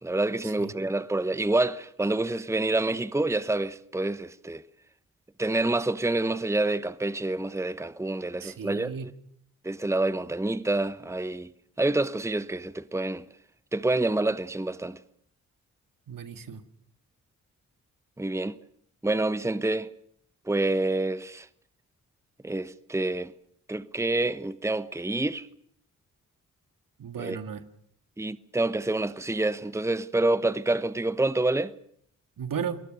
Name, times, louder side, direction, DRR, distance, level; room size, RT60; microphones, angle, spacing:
voice 1, 0.0-4.6 5.4-9.1 9.6-11.5 11.8-13.2 13.7-15.0 18.2-18.5 19.0-19.9 20.5-21.5 22.4-23.3 23.7-25.5 27.2-27.4 28.2-31.7, right 2 dB, 10° right, 1.1 m, -27 dB
voice 2, 8.4-9.1 16.1-16.6 27.0-27.6 32.4-32.8, right 7 dB, 65° right, 2.0 m, -35 dB
28.5 x 19.0 x 6.6 m
supercardioid pair, 40°, 35 cm